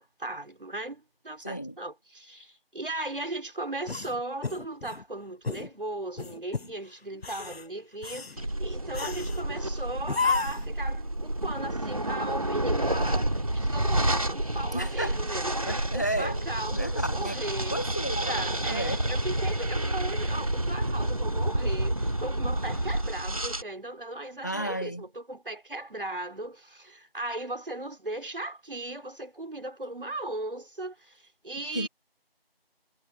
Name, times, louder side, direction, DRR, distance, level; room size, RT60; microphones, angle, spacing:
voice 1, 0.0-17.8 18.2-31.9, right 2 dB, 60° right, 4.1 m, -37 dB
voice 2, 1.4-1.7 14.7-15.2 15.7-16.4 16.7-17.4 17.7-19.0 24.4-25.0 31.7-31.9, right 1 dB, 20° left, 1.6 m, -32 dB
sound 1, 3.8-5.0 5.4-5.7 6.2-6.7 7.1-7.6 8.0-8.4 8.9-9.4 10.1-10.7, left 4 dB, 80° left, 0.9 m, -32 dB
sound 2, 8.4-23.6, right 1 dB, 35° right, 2.0 m, -29 dB
figure-of-eight pair, 180°, 30 cm